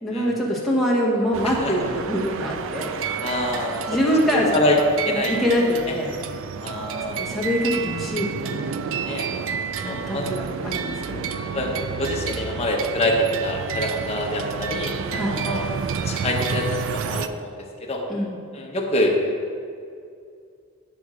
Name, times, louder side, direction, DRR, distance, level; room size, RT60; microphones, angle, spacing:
voice 1, 0.0-3.1 3.9-4.7 5.1-6.1 7.2-8.7 9.8-11.2 15.2-15.3 18.1-18.4, equal, ahead, -5 dB, 1.2 m, -24 dB
sound 1, 1.3-17.3, right 6 dB, 60° right, 0.3 m, -30 dB
voice 2, 1.4-1.9 3.2-3.8 4.3-4.8 5.1-5.4 5.8-5.9 6.6-7.2 9.0-9.3 9.8-10.3 11.5-15.7 16.0-18.0 18.5-19.1, left 1 dB, 30° left, -1 dB, 1.0 m, -26 dB
8.7 x 3.5 x 6.2 m, 2.3 s
head